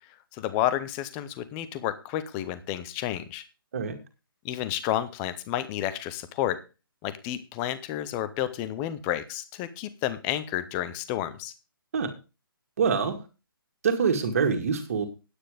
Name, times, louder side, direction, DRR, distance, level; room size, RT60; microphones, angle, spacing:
voice 1, 0.4-3.4 4.4-6.6 7.0-11.5, left 12 dB, 10° left, 13 dB, 0.5 m, -31 dB
voice 2, 12.8-13.2 13.8-15.1, right 6 dB, 35° right, 6 dB, 2.1 m, -25 dB
9.7 x 9.2 x 5.0 m, 0.31 s
hypercardioid pair, 170°, 12 cm